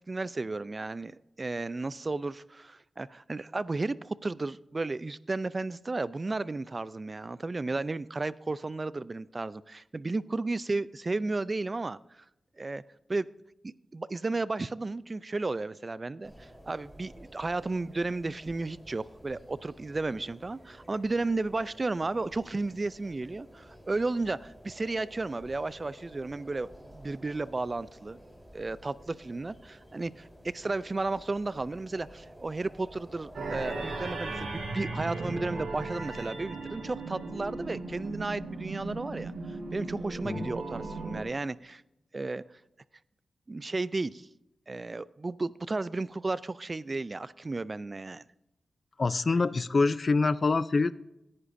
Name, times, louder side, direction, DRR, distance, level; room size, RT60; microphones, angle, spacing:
voice 1, 0.1-12.0 12.6-12.8 13.1-13.3 13.6-28.2 28.5-41.8 42.1-42.4 43.5-44.3 44.7-48.2, right 3 dB, 40° right, 18 dB, 0.4 m, -33 dB
sound 1, 16.2-34.1, equal, 15° right, 3.7 m, -52 dB
sound 2, 33.3-41.2, right 3 dB, 70° right, 4.3 m, -37 dB
voice 2, 49.0-50.9, left 3 dB, 50° left, 16 dB, 0.4 m, -25 dB
16.5 x 9.7 x 2.6 m, 0.87 s
cardioid pair, 55°, 0 cm